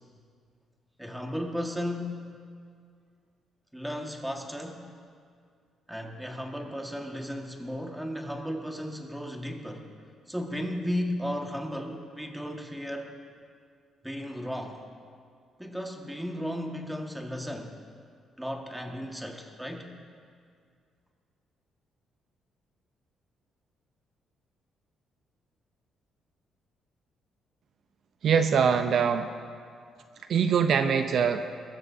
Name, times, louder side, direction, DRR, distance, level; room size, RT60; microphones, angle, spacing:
voice 1, 1.0-2.2 3.7-4.9 5.9-9.9 10.3-13.1 14.0-14.8 15.6-17.8 18.4-19.9, equal, 5° right, 2 dB, 1.7 m, -35 dB
voice 2, 28.2-29.3 30.3-31.4, right 7 dB, 65° right, 8 dB, 0.6 m, -23 dB
21.5 x 14.0 x 2.8 m, 2.2 s
cardioid pair, 90°, 0 cm